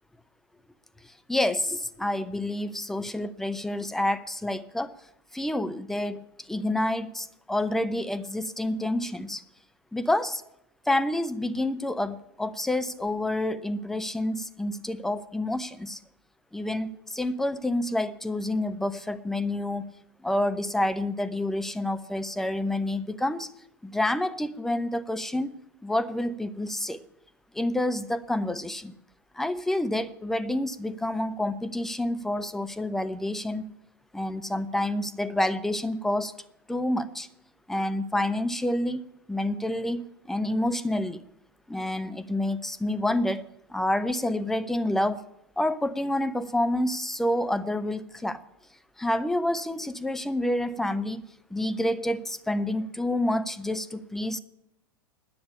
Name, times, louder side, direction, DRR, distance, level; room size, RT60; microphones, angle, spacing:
voice 1, 1.3-4.9 5.3-9.4 9.9-10.4 10.9-16.0 16.5-19.8 20.2-23.5 23.8-25.5 25.8-27.0 27.5-28.9 29.3-33.7 34.1-36.3 36.7-37.3 37.7-39.0 39.3-41.2 41.7-45.2 45.6-48.4 49.0-51.2 51.5-54.4, left 1 dB, 5° left, 12 dB, 0.7 m, -28 dB
10.0 x 8.7 x 9.7 m, 0.79 s
figure-of-eight pair, 85°, 13 cm